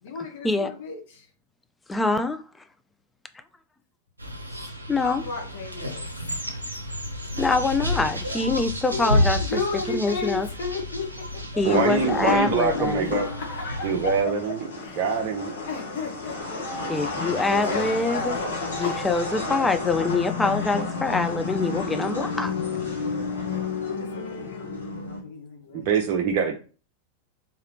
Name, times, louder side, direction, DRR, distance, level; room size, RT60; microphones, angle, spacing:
voice 1, 0.0-1.2 5.0-6.1 8.9-11.6 12.2-12.3 13.0-14.1 14.8-15.0 15.7-16.6 17.5-18.5 18.8-19.1 24.0-25.8, left 4 dB, 55° left, 1.2 m, -34 dB
voice 2, 1.9-2.4 4.9-5.3 7.4-9.6 9.9-10.5 11.6-13.2 16.9-18.4 18.7-22.5, left 3 dB, 10° left, 0.4 m, -25 dB
sound 1, 4.2-14.2, left 1 dB, 85° right, 0.6 m, -30 dB
sound 2, 11.6-25.2, left 4 dB, 70° left, 1.6 m, -31 dB
voice 3, 11.6-13.3 13.8-14.7 15.0-15.5 25.7-26.5, right 5 dB, 45° right, 0.6 m, -24 dB
3.7 x 2.8 x 3.1 m
figure-of-eight pair, 90°, 0 cm